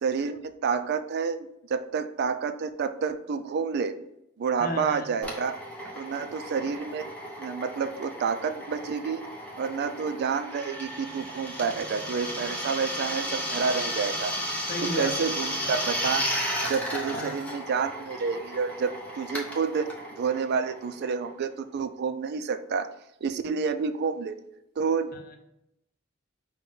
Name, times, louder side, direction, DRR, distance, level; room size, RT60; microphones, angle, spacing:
voice 1, 0.0-3.9 4.4-5.5 5.9-7.1 7.4-9.2 9.6-14.3 14.8-16.3 16.7-22.9 23.2-24.4 24.8-25.1, right 5 dB, 55° right, 10 dB, 0.3 m, -29 dB
voice 2, 4.6-5.1 14.7-15.1 15.5-15.7 17.1-17.3 25.1-25.4, left 1 dB, 45° left, 3 dB, 0.7 m, -34 dB
Drill, 5.2-21.6, equal, 5° left, 0.7 m, -34 dB
5.4 x 2.2 x 3.8 m, 0.83 s
head